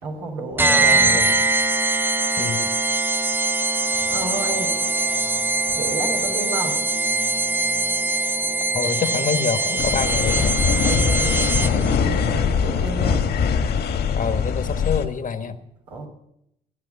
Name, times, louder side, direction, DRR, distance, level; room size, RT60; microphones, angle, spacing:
voice 1, 0.0-1.3 3.3-5.1 5.6-6.9 8.4-8.5 10.8-13.3 15.9-16.1, right 2 dB, 90° right, 3.4 m, -32 dB
voice 2, 0.6-1.4 2.4-2.7 8.7-10.6 14.1-15.6, left 6 dB, 45° left, 1.4 m, -26 dB
sound 1, 0.6-12.0, right 2 dB, 10° right, 0.6 m, -22 dB
sound 2, 3.9-12.9, right 2 dB, 70° right, 6.6 m, -41 dB
sound 3, 9.8-15.1, left 6 dB, 65° left, 1.8 m, -22 dB
16.5 x 10.5 x 7.0 m
hypercardioid pair, 55°, 18 cm